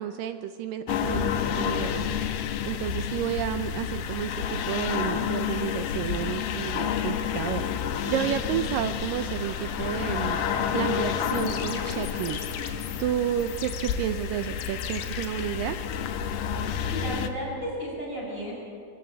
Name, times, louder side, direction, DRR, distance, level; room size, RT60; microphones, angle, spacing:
voice 1, 0.0-10.4 10.7-12.5 13.0-15.8, right 11 dB, 80° right, 10 dB, 2.1 m, -31 dB
sound 1, 0.9-17.3, left 8 dB, 85° left, 3.1 m, -30 dB
Car, 6.6-16.2, right 1 dB, 25° right, 4.2 m, -46 dB
sound 2, 11.2-16.1, left 8 dB, 60° left, 2.5 m, -41 dB
voice 2, 16.9-18.7, equal, 15° left, -4 dB, 6.0 m, -33 dB
24.0 x 15.0 x 8.8 m, 2.6 s
omnidirectional pair, 4.5 m